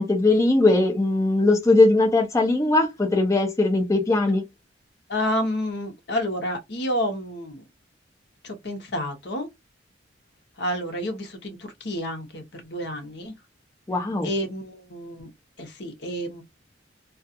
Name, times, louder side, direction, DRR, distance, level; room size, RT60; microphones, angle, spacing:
voice 1, 0.0-4.5 13.9-14.3, left 2 dB, 15° left, 0.5 m, -20 dB
voice 2, 5.1-7.6 8.4-9.5 10.6-13.3 14.2-15.3 15.6-16.4, equal, 60° left, 0.9 m, -29 dB
2.3 x 2.3 x 2.6 m
head